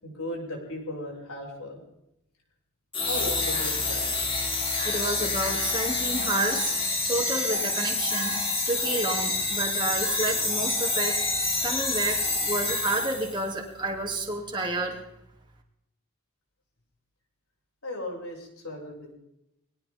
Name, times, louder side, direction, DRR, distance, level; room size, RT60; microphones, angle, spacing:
voice 1, 0.0-1.8 3.0-4.1 17.8-19.1, left 1 dB, 65° left, -1 dB, 6.8 m, -36 dB
sound 1, 2.9-13.5, left 3 dB, 25° left, 3.1 m, -28 dB
voice 2, 4.8-6.7 7.1-8.4 8.7-11.2 11.6-15.0, right 2 dB, 20° right, 0 dB, 2.9 m, -30 dB
21.5 x 18.0 x 3.7 m, 0.83 s
head